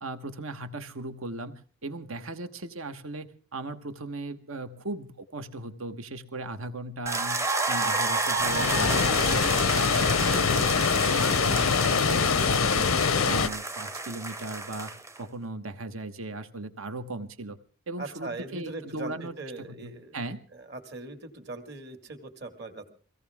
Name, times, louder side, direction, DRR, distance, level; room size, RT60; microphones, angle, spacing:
voice 1, 0.0-7.4 7.7-12.9 13.2-17.6 17.9-20.4, right 2 dB, 75° right, 9 dB, 1.3 m, -38 dB
sound 1, 7.1-15.2, right 2 dB, 15° right, 0.7 m, -30 dB
Water, 8.4-13.5, left 6 dB, 80° left, 0.7 m, -24 dB
voice 2, 18.0-20.2 20.6-22.9, right 2 dB, 50° right, 6 dB, 2.2 m, -40 dB
23.5 x 17.0 x 3.6 m, 0.40 s
head